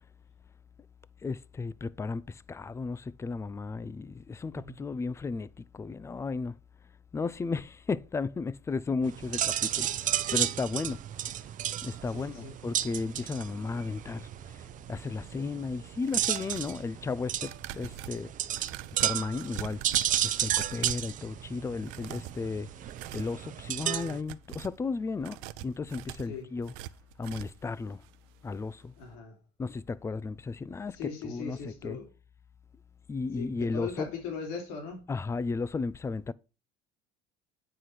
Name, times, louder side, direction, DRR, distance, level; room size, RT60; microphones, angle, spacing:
voice 1, 1.2-6.5 7.1-11.0 11.8-14.6 14.9-18.3 19.0-19.8 20.2-22.7 23.1-26.7 27.2-28.0 28.4-28.9 29.6-32.0 33.1-34.1 35.1-36.3, left 4 dB, 15° left, 0.4 m, -34 dB
sound 1, 9.0-24.2, right 11 dB, 40° right, 0.7 m, -33 dB
voice 2, 12.1-12.5 26.3-26.5 29.0-29.4 30.9-32.1 33.3-35.0, left 5 dB, 85° left, 3.1 m, -39 dB
sound 2, 16.0-16.8 17.4-21.1 21.8-22.4 22.8-23.4 23.8-24.8 25.2-27.7 28.0-28.1 28.5-28.6, right 14 dB, 80° right, 0.7 m, -43 dB
9.7 x 4.9 x 5.9 m
cardioid pair, 125°, 20 cm